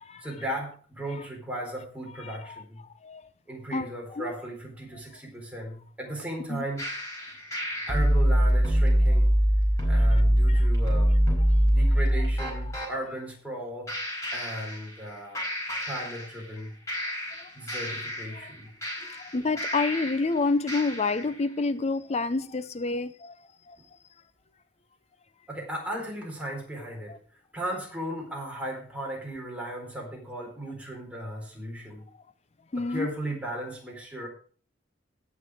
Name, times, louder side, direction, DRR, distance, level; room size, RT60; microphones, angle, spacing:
voice 1, 0.2-2.9 3.5-6.9 7.9-9.3 9.8-11.1 11.7-13.9 14.3-15.4 15.8-16.7 17.5-18.7 25.5-27.2 27.5-32.0 32.8-34.3, right 1 dB, 5° right, 4.2 m, -36 dB
voice 2, 2.2-2.6 3.0-3.2 3.7-4.3 6.5-6.7 10.1-10.2 10.5-10.6 16.0-16.1 17.4-17.5 18.4-18.5 19.0-23.3 23.7-23.8 27.1-27.2 32.7-33.1, left 3 dB, 35° left, 0.5 m, -29 dB
sound 1, 6.8-12.9 13.9-15.1 15.3-16.6 16.9-20.3 20.7-21.3, equal, 15° left, 4.8 m, -24 dB
18.0 x 6.1 x 4.9 m
head